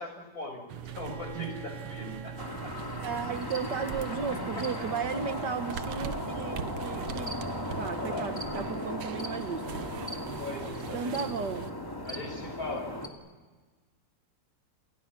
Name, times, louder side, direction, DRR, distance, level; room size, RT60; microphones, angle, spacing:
voice 1, 0.0-2.4 2.6-2.7 4.3-4.9 7.9-8.3 10.4-11.2 12.0-12.9, left 2 dB, 45° left, 3 dB, 6.3 m, -40 dB
sound 1, 0.7-11.7, right 8 dB, 85° right, 1.8 m, -41 dB
Bowed string instrument, 0.9-4.6, right 1 dB, 40° right, 2.3 m, -51 dB
sound 2, 2.4-13.1, left 1 dB, 10° left, 2.3 m, -37 dB
voice 2, 3.0-7.4 7.8-9.7 10.9-11.7, right 6 dB, 65° right, 9 dB, 1.7 m, -35 dB
29.0 x 28.5 x 5.9 m, 1.4 s
omnidirectional pair, 2.1 m